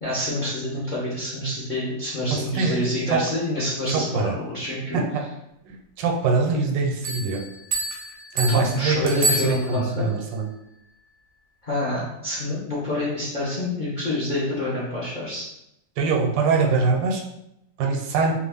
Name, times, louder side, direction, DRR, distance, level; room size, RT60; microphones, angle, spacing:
voice 1, 0.0-5.0 8.5-10.1 11.6-15.5, left 1 dB, 50° left, -8 dB, 0.5 m, -27 dB
voice 2, 2.3-2.8 3.1-3.2 3.9-4.4 4.9-5.2 5.7-7.4 8.3-10.5 16.0-17.2 17.8-18.3, right 4 dB, 90° right, 2 dB, 1.3 m, -23 dB
sound 1, 7.0-10.1, right 2 dB, 65° right, 0.8 m, -29 dB
2.9 x 2.3 x 3.4 m, 0.83 s
omnidirectional pair, 1.9 m